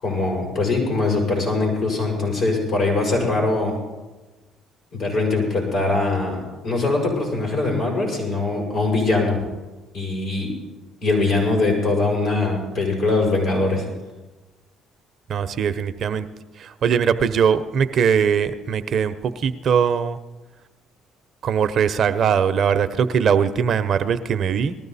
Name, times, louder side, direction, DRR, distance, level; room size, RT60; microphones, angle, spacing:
voice 1, 0.0-3.8 4.9-9.4 9.9-10.5 11.0-13.8, left 3 dB, 70° left, -1 dB, 6.8 m, -22 dB
voice 2, 15.3-16.3 16.6-20.2 21.4-24.8, right 7 dB, 55° right, 11 dB, 0.7 m, -21 dB
19.5 x 14.0 x 4.2 m, 1.2 s
supercardioid pair, 65°, 0 cm